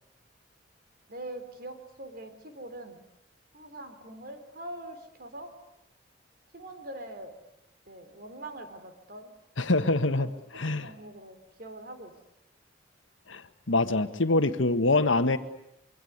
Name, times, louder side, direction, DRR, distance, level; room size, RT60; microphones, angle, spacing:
voice 1, 1.1-3.0 3.5-5.6 6.5-7.4 7.9-9.3 10.1-12.1, right 1 dB, 50° right, 7 dB, 3.8 m, -43 dB
voice 2, 9.6-10.3 10.6-10.9 13.3-15.4, left 2 dB, 85° left, 10 dB, 1.6 m, -25 dB
25.5 x 23.5 x 9.6 m, 0.81 s
head